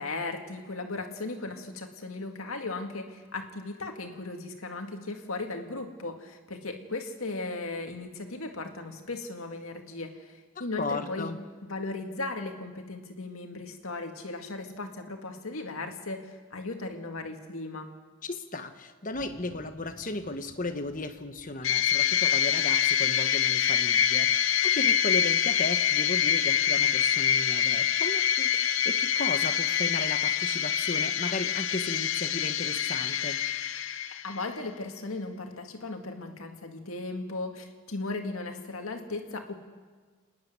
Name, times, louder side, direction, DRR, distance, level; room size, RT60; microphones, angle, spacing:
voice 1, 0.0-11.3 11.6-17.9 34.2-39.6, left 3 dB, 85° left, 4 dB, 2.0 m, -37 dB
voice 2, 10.8-11.4 18.2-33.4, left 2 dB, 40° left, 8 dB, 1.1 m, -35 dB
sound 1, 19.1-22.7, right 1 dB, 70° right, 3.7 m, -53 dB
sound 2, 21.6-34.5, left 9 dB, 65° left, 0.6 m, -26 dB
27.5 x 10.5 x 9.5 m, 1.5 s
head